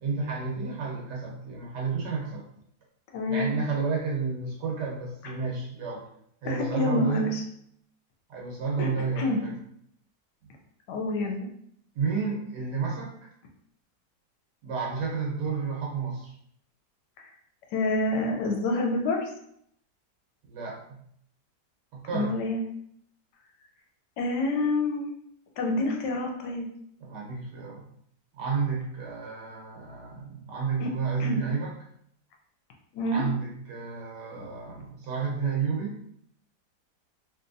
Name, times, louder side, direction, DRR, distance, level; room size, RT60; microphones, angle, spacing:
voice 1, 0.0-2.4 3.3-6.0 6.4-7.3 8.3-9.5 11.9-13.3 14.6-16.3 20.4-21.0 21.9-22.3 27.0-27.8 28.3-31.7 33.0-36.0, right 5 dB, 80° right, -3 dB, 1.6 m, -31 dB
voice 2, 3.1-3.5 6.4-7.4 8.8-8.9 9.2-9.5 10.9-11.5 17.2-17.3 17.7-19.2 22.1-22.6 24.2-25.1 25.6-26.7 30.8-30.9 31.2-31.4 32.9-33.2 34.4-34.5, left 2 dB, 80° left, 2 dB, 1.3 m, -27 dB
3.2 x 2.8 x 2.6 m, 0.69 s
omnidirectional pair, 1.8 m